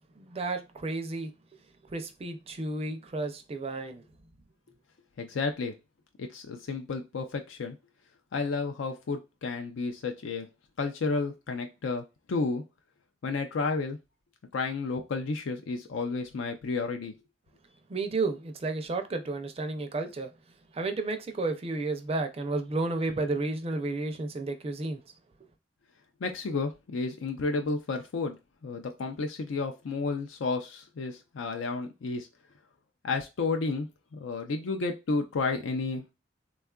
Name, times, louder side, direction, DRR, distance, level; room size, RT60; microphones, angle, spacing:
voice 1, 0.2-1.3 1.9-4.0 17.9-20.3 20.7-25.0, right 3 dB, 30° right, 0.4 m, -32 dB
voice 2, 5.2-5.7 6.2-7.8 8.3-10.5 10.8-12.6 13.2-14.0 14.5-17.1 26.2-28.4 28.6-32.3 33.0-33.9 34.1-36.1, left 4 dB, 85° left, 0.4 m, -31 dB
3.5 x 2.3 x 2.2 m
head